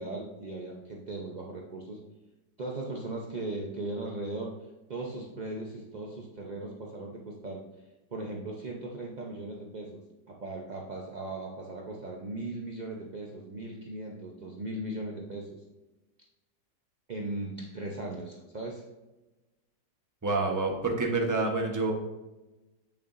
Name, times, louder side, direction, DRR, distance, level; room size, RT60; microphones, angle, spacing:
voice 1, 0.0-2.0 2.6-4.6 4.9-7.6 8.1-10.0 10.3-15.6 17.1-18.8, right 2 dB, 55° right, -1 dB, 0.5 m, -38 dB
voice 2, 20.2-21.9, right 3 dB, 15° right, 1 dB, 0.7 m, -27 dB
8.5 x 6.8 x 2.6 m, 1.1 s
omnidirectional pair, 1.9 m